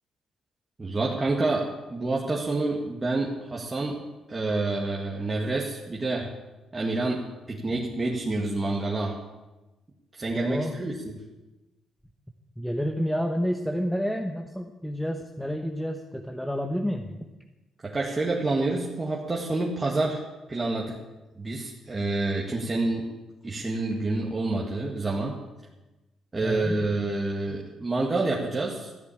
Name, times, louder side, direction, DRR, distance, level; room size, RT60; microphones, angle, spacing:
voice 1, 0.8-4.0 4.3-6.3 6.7-9.2 10.1-11.2 17.8-20.2 20.5-20.9 21.4-23.1 23.4-25.4 26.3-28.9, right 2 dB, 25° right, -3 dB, 2.0 m, -28 dB
voice 2, 10.3-10.8 12.6-17.3 26.4-27.0 27.8-27.9, equal, 5° left, 4 dB, 1.0 m, -30 dB
13.5 x 8.4 x 8.6 m, 1.1 s
cardioid pair, 90°, 0 cm